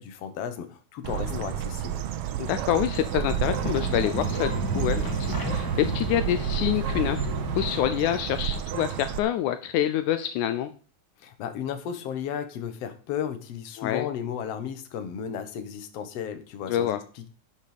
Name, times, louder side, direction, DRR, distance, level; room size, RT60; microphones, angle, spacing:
voice 1, 0.0-2.0 11.2-17.3, left 8 dB, 60° left, 9 dB, 2.2 m, -34 dB
Bird, 1.0-9.2, right 10 dB, 75° right, 1.4 m, -30 dB
voice 2, 2.4-7.3 7.6-10.7 13.8-14.1 16.7-17.0, left 11 dB, 80° left, 10 dB, 2.1 m, -27 dB
sound 1, 2.9-8.0, equal, 10° left, 1.3 m, -33 dB
11.0 x 6.7 x 5.1 m, 0.38 s
omnidirectional pair, 3.6 m